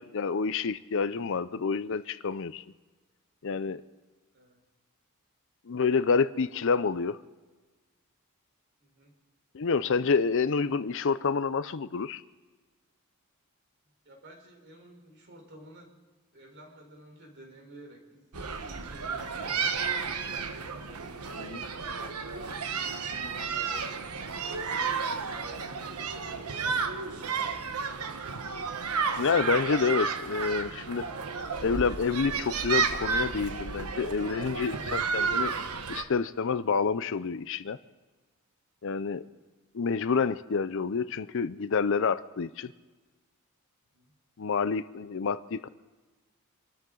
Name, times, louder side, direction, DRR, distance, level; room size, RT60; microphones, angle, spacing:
voice 1, 0.0-2.6 3.4-3.8 5.7-7.2 9.5-12.2 21.4-21.6 29.2-31.1 31.6-35.5 35.9-37.8 38.8-39.2 39.7-42.7 44.4-45.7, left 5 dB, 55° left, 0.5 m, -28 dB
voice 2, 8.8-9.1 14.0-15.9 16.3-20.2 20.6-24.0 24.5-27.0 27.3-28.1 39.0-39.3 43.9-44.1, right 1 dB, 50° right, 4.2 m, -52 dB
sound 1, 18.3-36.0, right 5 dB, 85° right, 1.2 m, -32 dB
26.5 x 13.5 x 3.9 m
head